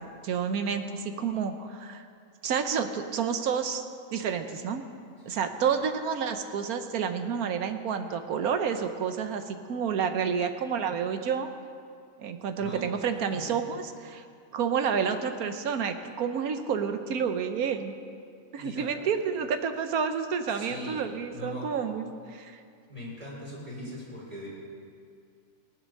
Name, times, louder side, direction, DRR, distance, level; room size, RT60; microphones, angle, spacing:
voice 1, 0.2-2.0 2.4-3.8 4.1-4.8 5.2-11.5 12.2-14.2 14.5-17.9 18.5-22.6, right 6 dB, 85° right, 8 dB, 1.3 m, -29 dB
voice 2, 5.2-5.6 12.6-13.0 13.3-13.6 18.5-19.0 20.5-21.8 22.9-24.5, equal, 25° right, -6 dB, 4.8 m, -41 dB
19.0 x 8.0 x 6.5 m, 2.3 s
omnidirectional pair, 1.5 m